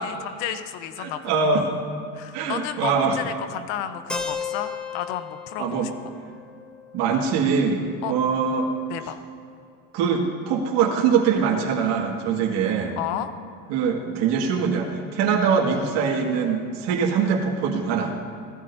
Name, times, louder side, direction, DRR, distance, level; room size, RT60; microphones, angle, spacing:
voice 1, 0.0-1.3 2.1-5.9 8.0-8.1 8.9-9.2 13.0-13.3, left 10 dB, 70° left, 10 dB, 1.0 m, -32 dB
voice 2, 1.0-1.7 2.3-3.2 5.6-5.9 6.9-8.7 9.9-13.0 13.7-18.1, right 6 dB, 70° right, -1 dB, 2.1 m, -23 dB
Keyboard (musical), 4.1-8.0, left 5 dB, ahead, 0.4 m, -35 dB
19.0 x 14.0 x 2.8 m, 2.5 s
cardioid pair, 145°, 44 cm